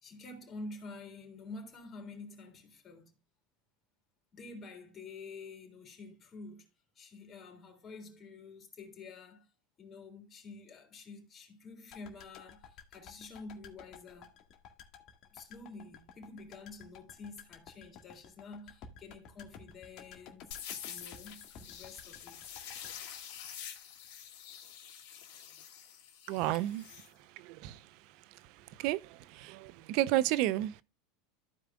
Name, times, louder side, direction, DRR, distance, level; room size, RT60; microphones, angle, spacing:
voice 1, 0.0-3.1 4.3-6.7 7.0-9.5 9.8-14.4 15.3-20.5 20.9-22.4 26.5-26.7, left 3 dB, 35° left, 3.5 m, -49 dB
sound 1, 11.9-24.1 24.4-24.5, left 6 dB, 50° left, 1.8 m, -54 dB
sound 2, 20.5-27.1, left 9 dB, 65° left, 2.6 m, -47 dB
voice 2, 26.3-26.8 27.4-27.9 28.3-30.8, right 15 dB, 60° right, 0.6 m, -32 dB
14.5 x 5.0 x 2.3 m
hypercardioid pair, 100°, 0 cm